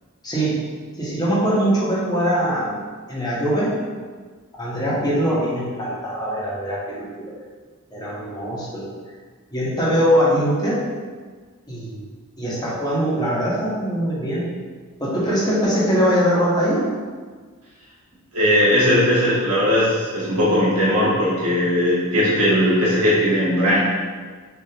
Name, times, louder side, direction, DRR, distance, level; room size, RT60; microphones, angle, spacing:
voice 1, 0.2-0.6 1.0-2.8 3.1-3.8 4.5-7.4 7.9-8.9 9.5-10.8 11.7-12.1 12.4-14.4 15.0-16.9, equal, 20° left, -6 dB, 1.2 m, -22 dB
voice 2, 18.3-23.8, equal, 85° right, -8 dB, 1.3 m, -18 dB
6.5 x 2.8 x 2.9 m, 1.5 s
head